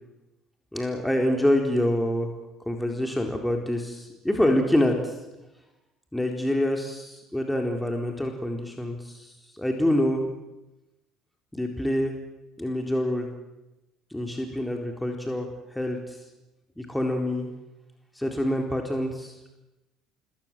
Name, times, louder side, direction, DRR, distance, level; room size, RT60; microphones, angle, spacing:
voice 1, 0.7-2.3 2.7-5.2 6.1-10.3 11.5-12.1 12.6-13.3 14.1-16.2 16.8-17.5 18.1-19.6, left 1 dB, 5° left, 2 dB, 4.1 m, -26 dB
27.0 x 22.0 x 7.7 m, 1.0 s
hypercardioid pair, 60°, 0 cm